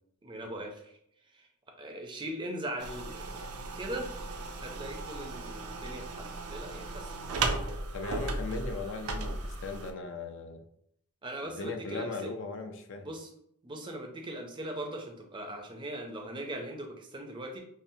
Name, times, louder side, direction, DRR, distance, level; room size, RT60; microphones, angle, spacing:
voice 1, 0.2-1.0 1.3-1.5 1.8-3.4 3.7-4.1 4.6-7.4 11.2-12.3 13.0-13.3 13.6-17.6, right 1 dB, 20° right, 2 dB, 0.5 m, -40 dB
sound 1, 2.8-9.9, right 3 dB, 80° right, 0.5 m, -36 dB
voice 2, 7.9-10.6 11.4-13.1, left 3 dB, 55° left, 6 dB, 0.4 m, -38 dB
5.4 x 2.0 x 2.7 m, 0.72 s
head